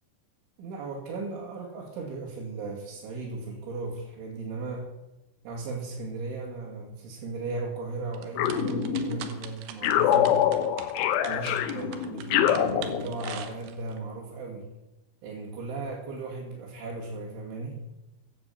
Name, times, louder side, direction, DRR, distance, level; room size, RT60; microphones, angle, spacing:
voice 1, 0.6-4.9 5.4-10.4 11.2-14.7 15.2-17.8, right 3 dB, 70° right, -4 dB, 4.9 m, -36 dB
sound 1, 8.1-14.0, right 9 dB, 85° right, 3.9 m, -42 dB
sound 2, 8.4-9.3 9.8-13.5, left 10 dB, 80° left, 3.4 m, -25 dB
15.5 x 10.0 x 7.3 m, 0.99 s
omnidirectional pair, 5.7 m